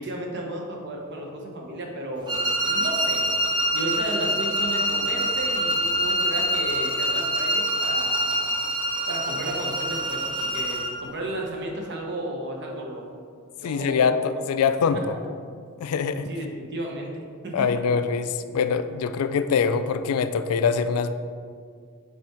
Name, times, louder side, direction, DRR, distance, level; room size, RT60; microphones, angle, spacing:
voice 1, 0.0-3.3 3.7-8.6 9.1-13.0 13.6-14.4 16.3-17.7, right 1 dB, 55° right, 0 dB, 1.0 m, -34 dB
sound 1, 2.3-11.0, right 1 dB, 20° right, 0.5 m, -25 dB
voice 2, 13.6-15.1 15.8-16.3 17.5-21.1, left 6 dB, 85° left, 11 dB, 0.3 m, -24 dB
5.9 x 3.6 x 4.4 m, 2.1 s
head